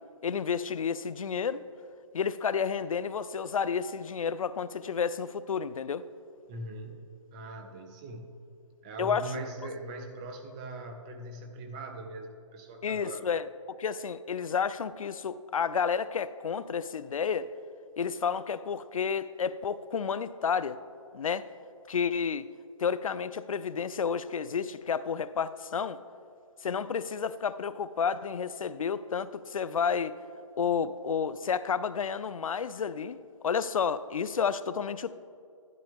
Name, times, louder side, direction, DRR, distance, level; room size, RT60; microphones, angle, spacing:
voice 1, 0.2-1.6 2.1-6.1 9.0-9.3 12.8-17.5 18.0-20.8 21.1-21.5 21.9-22.5 22.8-26.0 26.6-30.2 30.6-33.2 33.4-35.2, left 6 dB, 90° left, 16 dB, 0.5 m, -31 dB
voice 2, 6.5-8.4 8.8-13.3, right 2 dB, 10° right, 4 dB, 0.4 m, -41 dB
12.0 x 10.5 x 3.5 m, 2.4 s
hypercardioid pair, 160°, 17 cm